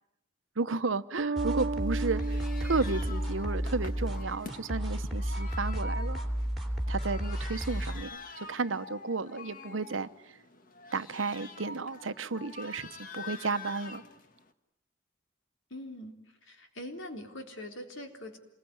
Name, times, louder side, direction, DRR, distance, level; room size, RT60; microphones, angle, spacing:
voice 1, 0.6-6.2 6.9-10.1 10.9-12.9 13.1-14.0, right 3 dB, 90° right, 1.0 m, -33 dB
Bass guitar, 1.2-4.7, right 4 dB, 45° right, 1.0 m, -36 dB
sound 1, 1.4-8.0, equal, ahead, 3.1 m, -32 dB
sound 2, 1.8-14.5, left 3 dB, 45° left, 1.7 m, -46 dB
voice 2, 15.7-16.1 16.4-18.4, left 1 dB, 80° left, 3.8 m, -42 dB
27.5 x 21.5 x 9.6 m
head